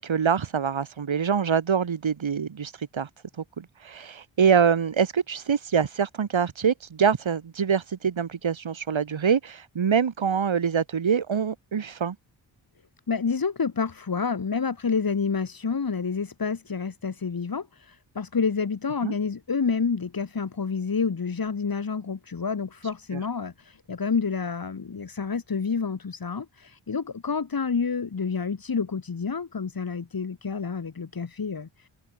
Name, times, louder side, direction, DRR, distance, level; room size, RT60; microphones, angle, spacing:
voice 1, 0.0-3.1 3.6-12.2 19.0-19.1 23.1-23.2, right 7 dB, 75° right, 5.5 m, -25 dB
voice 2, 13.1-31.9, left 5 dB, 50° left, 3.9 m, -29 dB
wide cardioid pair, 140°, 46 cm